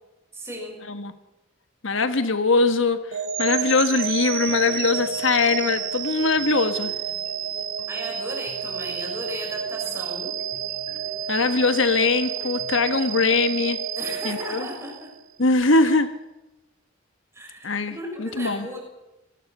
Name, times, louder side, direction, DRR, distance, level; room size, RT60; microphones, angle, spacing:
voice 1, 0.3-0.8 7.9-10.3 14.0-15.1 15.6-15.9 17.3-18.8, equal, 15° right, 1 dB, 6.2 m, -35 dB
voice 2, 1.8-6.9 11.3-13.8 14.2-14.7 15.4-16.1 17.6-18.7, left 3 dB, 70° left, 9 dB, 1.5 m, -22 dB
sound 1, 3.1-15.2, right 8 dB, 80° right, 1.5 m, -30 dB
sound 2, 4.5-12.8, equal, 30° left, 3.6 m, -48 dB
26.5 x 19.0 x 6.7 m, 0.99 s
head